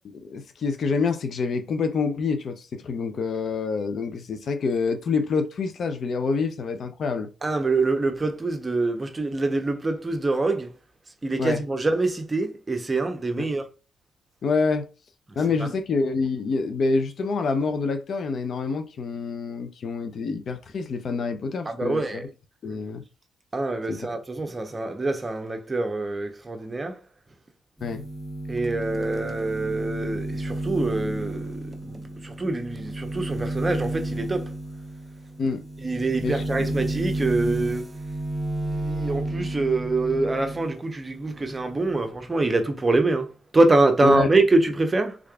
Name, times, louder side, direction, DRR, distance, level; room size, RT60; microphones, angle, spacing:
voice 1, 0.1-7.3 11.4-11.6 13.4-13.5 14.4-14.9 15.4-22.2 22.6-23.0 23.9-24.0 27.8-28.0 35.4-35.6 36.2-36.6 44.0-44.3, left 4 dB, 60° left, 0.5 m, -27 dB
voice 2, 7.4-10.7 11.2-13.7 15.3-15.7 21.6-22.2 23.5-27.0 28.5-34.5 35.8-37.8 38.8-45.2, right 2 dB, 25° right, 0.8 m, -25 dB
sound 1, 27.8-40.7 41.1-42.1, right 1 dB, 10° right, 1.1 m, -32 dB
3.6 x 3.3 x 2.3 m
cardioid pair, 70°, 0 cm